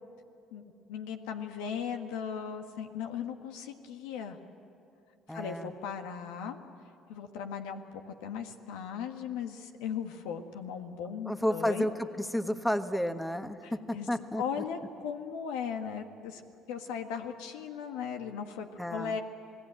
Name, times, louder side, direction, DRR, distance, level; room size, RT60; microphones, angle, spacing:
voice 1, 0.5-4.4 5.3-6.6 7.1-11.9 13.6-14.1 14.4-16.4 16.7-19.2, left 7 dB, 85° left, 5 dB, 1.6 m, -37 dB
voice 2, 5.3-5.7 11.2-14.4 18.8-19.2, equal, 5° left, 8 dB, 1.3 m, -31 dB
27.5 x 18.5 x 9.0 m, 2.5 s
supercardioid pair, 75°, 0 cm